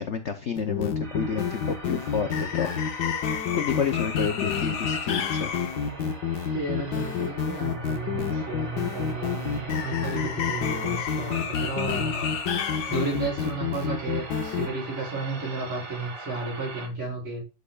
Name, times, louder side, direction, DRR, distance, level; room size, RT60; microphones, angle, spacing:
voice 1, 0.0-3.2 3.5-5.5, left 6 dB, 85° left, 7 dB, 0.6 m, -30 dB
sound 1, 0.6-14.7, left 7 dB, 60° left, 1.4 m, -28 dB
sound 2, 1.0-16.9, right 2 dB, 45° right, 2.0 m, -42 dB
voice 2, 6.5-12.3 12.9-17.5, right 3 dB, 80° right, -2 dB, 5.4 m, -33 dB
11.0 x 6.5 x 2.4 m, 0.29 s
omnidirectional pair, 2.2 m